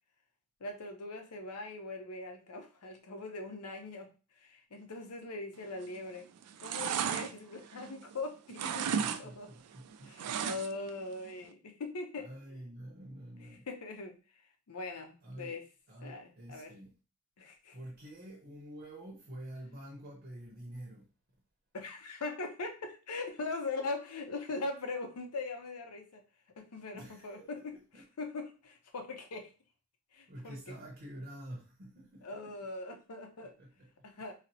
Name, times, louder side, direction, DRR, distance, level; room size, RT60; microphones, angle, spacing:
voice 1, 0.6-6.3 6.6-8.9 9.2-9.5 10.0-12.3 13.4-14.2 14.7-15.6 16.0-16.7 17.4-17.8 21.7-26.2 26.6-29.5 30.1-30.8 32.2-33.5 34.0-34.3, left 3 dB, 85° left, 0.6 m, -41 dB
sound 1, 5.8-6.1 6.4-8.2 8.5-9.2 9.5-10.9 11.2-11.3, right 7 dB, 85° right, 0.3 m, -34 dB
voice 2, 9.0-10.4 12.2-13.7 15.2-15.5 15.9-16.9 17.7-21.1 26.9-27.5 27.7-28.0 30.3-32.5 33.6-33.9, right 1 dB, 45° right, 0.7 m, -48 dB
4.0 x 2.0 x 2.7 m
head